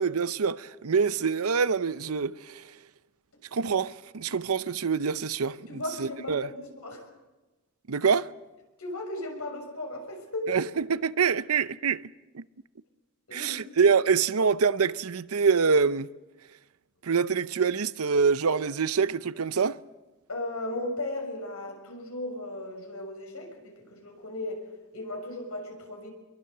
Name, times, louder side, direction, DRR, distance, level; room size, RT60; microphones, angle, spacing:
voice 1, 0.0-2.7 3.5-6.5 7.9-8.3 10.5-12.0 12.3-12.4 13.3-16.1 17.0-19.8, right 5 dB, 85° right, 0.7 m, -25 dB
voice 2, 5.7-7.0 8.8-10.6 13.3-13.6 20.3-24.6 24.9-26.1, left 1 dB, 80° left, 6.5 m, -36 dB
26.0 x 22.5 x 6.7 m
head